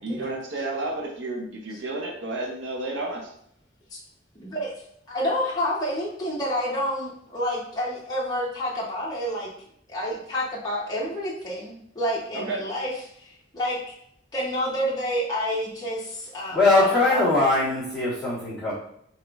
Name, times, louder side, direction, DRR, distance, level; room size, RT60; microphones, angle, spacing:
voice 1, 0.0-3.3 12.3-12.6, right 2 dB, 75° right, -1 dB, 0.7 m, -31 dB
voice 2, 4.3-4.7 5.1-9.5 9.9-13.3 13.5-13.8 14.3-17.2, equal, 20° left, -6 dB, 0.8 m, -29 dB
voice 3, 16.5-18.7, left 2 dB, 5° right, -11 dB, 1.4 m, -21 dB
4.8 x 2.9 x 2.4 m, 0.69 s
head